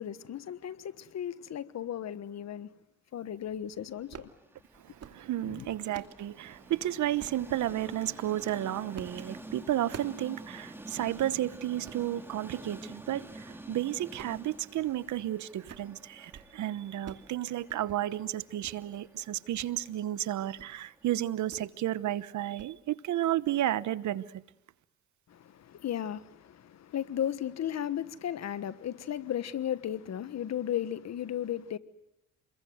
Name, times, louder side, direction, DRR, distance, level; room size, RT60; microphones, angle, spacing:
voice 1, 0.0-2.7 3.1-4.3 5.4-5.7 25.3-31.8, left 10 dB, 60° left, 1.4 m, -35 dB
Train, 3.5-21.6, right 1 dB, 5° right, 3.7 m, -49 dB
sound 1, 4.0-4.4 4.8-5.2 5.6-6.2 7.2-7.5 8.1-8.4 9.0-9.2 9.5-10.3 10.6-10.7 11.0-11.2 11.7-12.1 12.6-12.9 13.2-13.6 14.0-15.3 15.5-15.9 16.2-16.5 16.8-17.3 17.6-18.0 18.6-18.8 19.2-19.7 20.0-20.1 20.5-20.8 21.5-21.7 22.1-22.3 22.6-22.7, right 7 dB, 55° right, 2.6 m, -49 dB
voice 2, 4.8-24.2, right 13 dB, 75° right, 1.1 m, -32 dB
28.0 x 22.0 x 8.0 m
cardioid pair, 90°, 30 cm